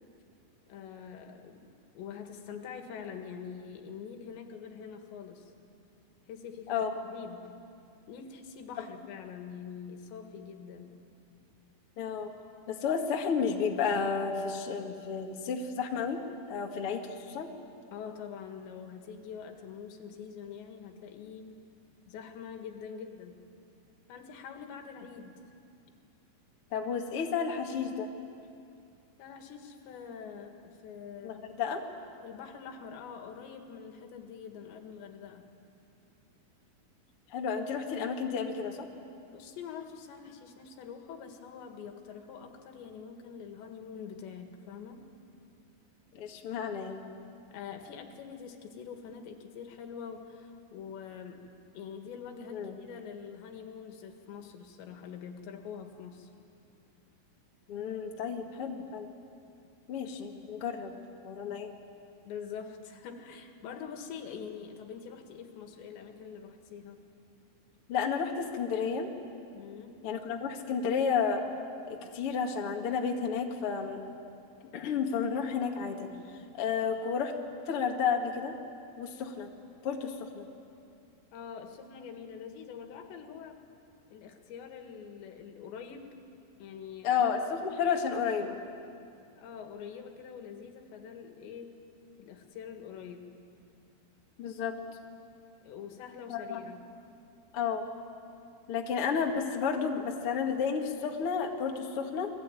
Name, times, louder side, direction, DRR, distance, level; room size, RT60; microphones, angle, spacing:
voice 1, 0.7-1.7 1.9-5.5 6.3-7.6 8.1-10.9 17.9-21.5 22.1-23.4 24.1-25.4 29.2-31.5 32.2-35.4 39.3-45.1 47.5-56.3 62.3-67.1 69.5-70.0 81.3-83.6 84.1-86.1 86.6-87.2 89.4-91.8 92.2-93.3 95.6-96.9, left 7 dB, 75° left, 4 dB, 4.0 m, -45 dB
voice 2, 12.0-12.3 12.7-17.5 26.7-28.1 31.2-31.8 37.3-38.9 46.1-47.0 52.5-52.7 57.7-59.1 59.9-60.9 61.2-61.7 67.9-69.1 70.0-71.4 71.9-74.0 74.7-76.1 76.6-77.3 77.6-78.6 79.0-79.5 79.8-80.5 87.0-88.6 94.4-94.8 96.3-96.6 97.5-97.8 98.7-102.3, left 6 dB, 50° left, 2 dB, 1.8 m, -31 dB
29.5 x 22.0 x 9.1 m, 2.5 s
omnidirectional pair, 5.2 m